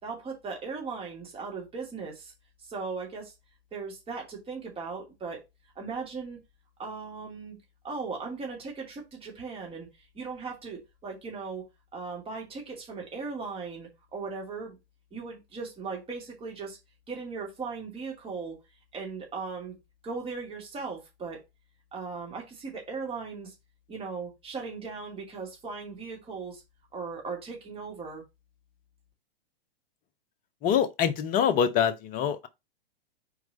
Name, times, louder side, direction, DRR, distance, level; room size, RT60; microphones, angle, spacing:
voice 1, 0.0-2.3 2.7-3.3 3.7-5.4 5.8-6.4 6.8-7.6 7.8-9.9 10.1-11.6 11.9-14.8 15.1-16.8 17.1-18.6 18.9-19.8 20.0-21.4 21.9-23.5 23.9-26.6 26.9-28.2, right 4 dB, 20° right, 2.7 m, -38 dB
voice 2, 30.6-32.5, left 8 dB, 25° left, 0.8 m, -25 dB
4.8 x 4.6 x 5.2 m
hypercardioid pair, 115°, 31 cm